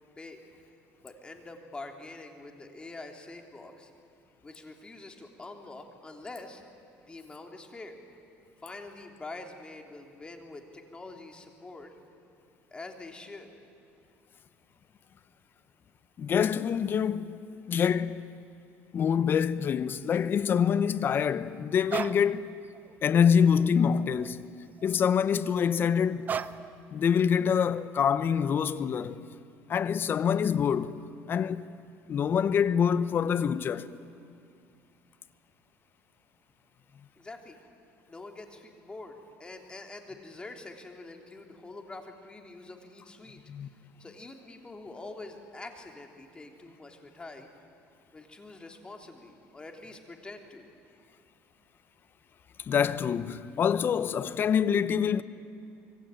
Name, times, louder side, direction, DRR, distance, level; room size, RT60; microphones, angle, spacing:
voice 1, 1.0-3.9 4.4-6.6 7.0-8.0 8.6-11.9 12.7-13.5 37.2-37.6 38.1-43.4 44.0-47.5 48.1-50.7, left 2 dB, 15° left, 3.1 m, -45 dB
voice 2, 16.2-17.4 17.7-18.3 18.9-22.6 23.0-24.5 24.8-26.3 26.9-29.3 29.7-31.0 31.3-31.7 32.1-33.9 43.5-43.7 52.7-55.2, left 7 dB, 40° left, 0.9 m, -26 dB
sound 1, 21.9-22.3 22.7-22.9 23.3-24.3 24.7-25.1 26.3-26.8, right 7 dB, 30° right, 0.8 m, -36 dB
25.5 x 23.5 x 9.0 m
cardioid pair, 115°, 6 cm